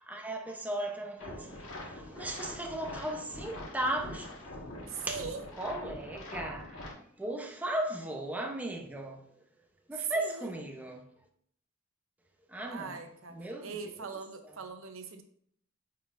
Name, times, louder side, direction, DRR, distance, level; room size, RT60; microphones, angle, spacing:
voice 1, 0.0-5.2 5.6-9.2 9.9-11.1 12.5-13.0 13.3-13.7, right 1 dB, 10° right, 0.7 m, -37 dB
sound 1, 1.2-6.9, left 1 dB, 85° left, 1.5 m, -44 dB
voice 2, 4.9-5.4 10.2-10.5 12.7-15.2, right 5 dB, 80° right, 0.7 m, -41 dB
9.2 x 4.2 x 2.5 m
head